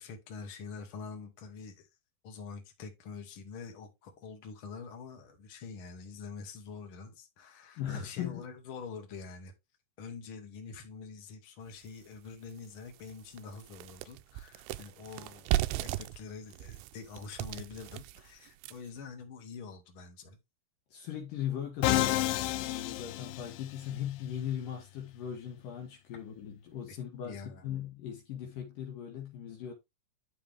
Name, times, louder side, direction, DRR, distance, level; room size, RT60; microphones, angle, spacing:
voice 1, 0.0-1.9 2.2-9.5 10.0-20.4 26.9-27.0 27.2-27.7, left 5 dB, 40° left, 2.6 m, -46 dB
voice 2, 7.8-8.4 20.9-29.7, left 9 dB, 60° left, 3.0 m, -39 dB
sound 1, 11.9-12.0 12.5-12.6 12.9-19.0, right 15 dB, 90° right, 2.7 m, -36 dB
Musical instrument, 21.8-23.9, left 15 dB, 85° left, 2.0 m, -30 dB
12.0 x 4.9 x 3.4 m
omnidirectional pair, 4.7 m